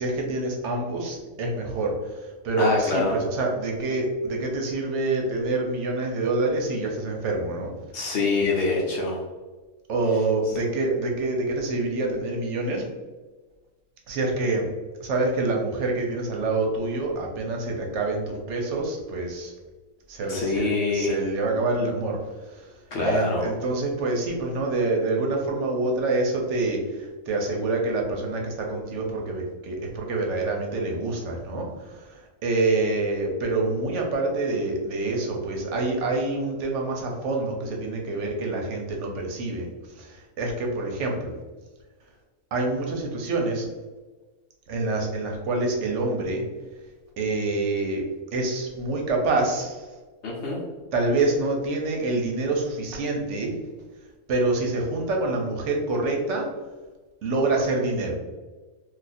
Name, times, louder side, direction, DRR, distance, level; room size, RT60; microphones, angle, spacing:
voice 1, 0.0-7.7 9.9-12.9 14.1-14.7 15.0-19.5 20.1-22.2 22.5-22.7 23.0-41.3 42.5-43.7 44.7-46.4 47.2-48.0 48.3-49.9 50.9-53.6 54.3-56.5 57.2-58.1, right 2 dB, 65° right, 1 dB, 0.9 m, -26 dB
voice 2, 2.6-3.2 7.9-9.2 20.3-21.2 22.9-23.5 50.2-50.6, left 3 dB, 60° left, -2 dB, 0.8 m, -25 dB
2.5 x 2.4 x 4.1 m, 1.3 s
omnidirectional pair, 1.5 m